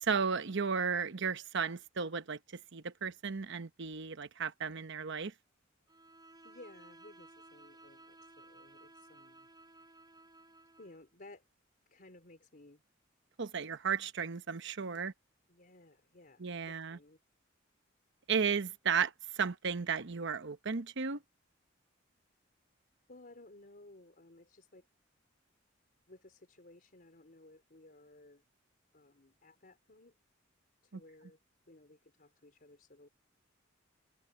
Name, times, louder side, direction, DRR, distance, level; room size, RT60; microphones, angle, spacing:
voice 1, 0.0-5.3 13.4-15.1 16.4-17.0 18.3-21.2 30.9-31.0, right 6 dB, 65° right, 0.9 m, -34 dB
Bowed string instrument, 5.9-11.1, right 2 dB, 20° right, 4.5 m, -57 dB
voice 2, 6.4-9.5 9.7-10.0 10.8-11.4 11.9-12.8 14.9-15.1 15.5-17.2 23.1-24.9 26.1-28.4 28.9-30.1 30.8-31.4 31.7-33.1, left 2 dB, 50° left, 3.9 m, -57 dB
head